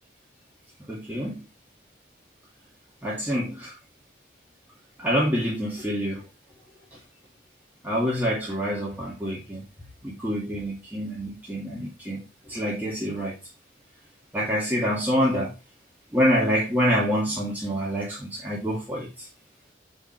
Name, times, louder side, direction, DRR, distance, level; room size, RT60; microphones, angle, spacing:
voice 1, 0.9-1.4 3.0-3.8 5.0-6.2 7.8-9.6 10.0-13.3 14.3-15.5 16.1-19.3, equal, 10° right, 2.1 m, -26 dB
7.1 x 5.1 x 4.4 m
head